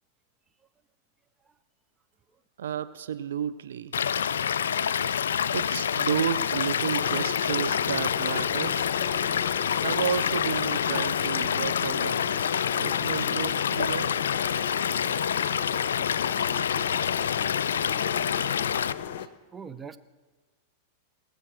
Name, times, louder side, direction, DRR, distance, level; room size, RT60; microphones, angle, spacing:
voice 1, 2.6-4.0 5.5-8.9 9.8-14.1, right 8 dB, 80° right, 14 dB, 0.5 m, -32 dB
Stream / Liquid, 3.9-18.9, left 8 dB, 85° left, 0.3 m, -27 dB
sound 1, 7.0-19.3, left 9 dB, 70° left, 0.7 m, -35 dB
voice 2, 19.2-20.0, right 6 dB, 20° right, 11 dB, 0.7 m, -44 dB
18.5 x 7.7 x 6.2 m, 1.3 s
hypercardioid pair, 110°, 0 cm